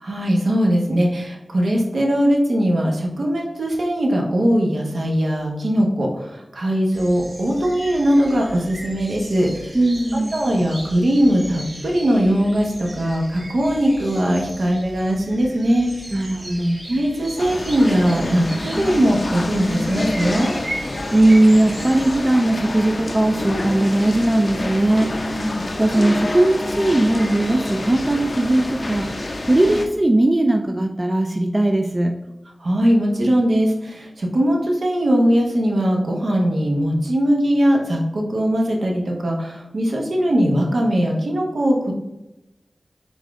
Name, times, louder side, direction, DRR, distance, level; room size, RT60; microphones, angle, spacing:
voice 1, 0.0-9.7 10.3-15.9 16.9-20.5 25.4-25.6 32.6-41.9, equal, 70° right, 0 dB, 0.9 m, -20 dB
sound 1, 6.9-22.2, right 1 dB, 45° right, 1.1 m, -37 dB
voice 2, 9.7-10.3 16.1-16.8 21.1-32.2, right 1 dB, 25° right, 4 dB, 0.3 m, -19 dB
sound 2, 17.4-29.9, left 1 dB, 45° left, 0.5 m, -27 dB
4.1 x 3.5 x 3.6 m, 0.94 s
wide cardioid pair, 75°, 0 cm